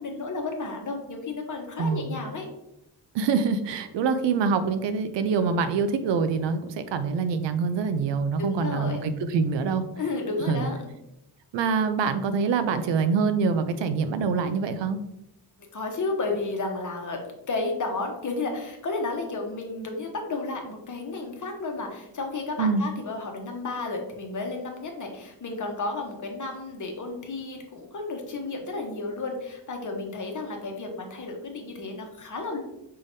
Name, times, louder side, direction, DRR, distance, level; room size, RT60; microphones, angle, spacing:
voice 1, 0.0-2.5 8.4-9.0 10.0-10.8 15.7-17.2 17.5-32.6, left 3 dB, 45° left, 2 dB, 1.0 m, -32 dB
voice 2, 1.8-2.2 3.1-9.8 10.5-10.7 11.5-15.0 22.6-22.9, right 5 dB, 80° right, 10 dB, 0.6 m, -25 dB
5.5 x 3.4 x 2.6 m, 0.87 s
cardioid pair, 95°, 43 cm